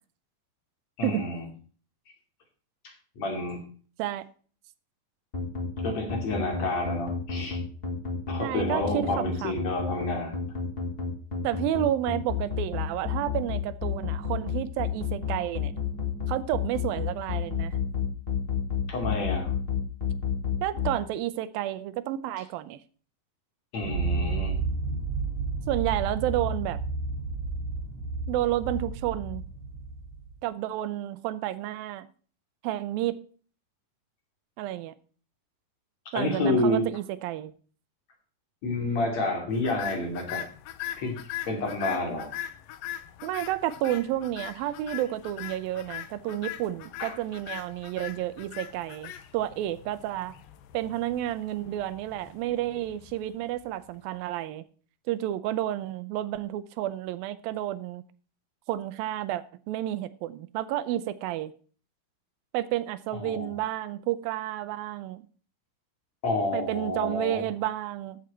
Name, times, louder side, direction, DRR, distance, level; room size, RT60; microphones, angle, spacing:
voice 1, 1.0-1.5 2.8-3.6 5.8-7.6 8.3-10.3 18.9-19.5 23.7-24.6 36.1-36.9 38.6-40.4 41.0-41.2 41.5-42.3 47.0-47.2 63.2-63.5 66.2-67.5, left 2 dB, 50° left, 3.8 m, -29 dB
sound 1, 5.3-20.9, left 7 dB, 20° left, 1.6 m, -29 dB
voice 2, 8.4-9.7 11.4-15.7 16.3-17.8 20.6-22.8 25.7-26.8 28.3-29.4 30.4-32.1 32.6-33.2 34.6-34.9 36.1-37.5 41.9-42.0 43.2-50.3 50.7-54.6 55.1-58.0 58.7-61.5 62.5-65.2 66.5-68.2, right 13 dB, 85° right, 2.5 m, -31 dB
sound 2, 23.8-30.3, right 3 dB, 65° right, 3.0 m, -31 dB
sound 3, 39.6-53.9, left 12 dB, 75° left, 2.5 m, -41 dB
13.5 x 7.9 x 4.4 m
omnidirectional pair, 4.1 m